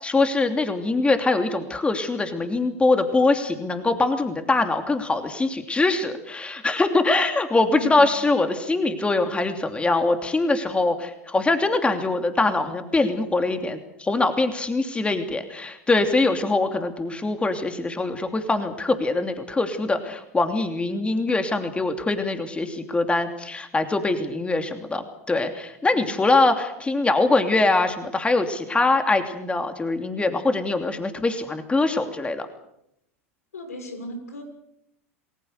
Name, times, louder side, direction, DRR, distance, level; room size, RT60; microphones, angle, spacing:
voice 1, 0.0-32.5, left 3 dB, 15° left, 7 dB, 2.9 m, -23 dB
voice 2, 7.6-8.2 25.9-26.1 33.5-34.4, equal, 85° left, 6 dB, 6.4 m, -36 dB
29.0 x 20.5 x 6.7 m, 0.81 s
hypercardioid pair, 90°, 8 cm